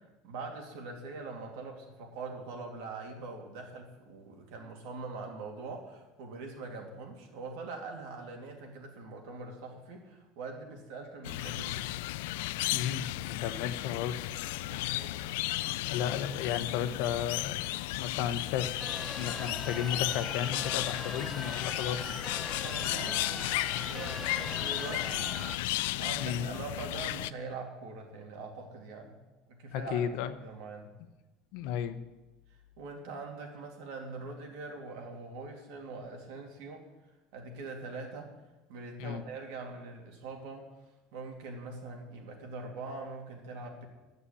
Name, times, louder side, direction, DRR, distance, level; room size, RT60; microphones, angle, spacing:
voice 1, 0.0-11.9 14.6-15.4 22.6-25.3 26.0-29.2 29.5-30.0 30.4-30.9 32.8-36.9 37.3-38.3 38.7-40.7 41.1-43.9, right 3 dB, 75° right, 2 dB, 2.8 m, -43 dB
sound 1, 11.2-27.3, left 17 dB, 90° left, 0.3 m, -34 dB
voice 2, 12.7-14.3 15.8-17.7 18.0-18.7 19.2-22.1 26.2-26.5 29.7-30.3 31.5-32.0 39.0-39.2, left 9 dB, 65° left, 11 dB, 0.9 m, -34 dB
sound 2, 18.8-25.5, left 1 dB, 5° left, 0.7 m, -41 dB
11.5 x 6.9 x 8.4 m, 1.1 s
cardioid pair, 160°, 0 cm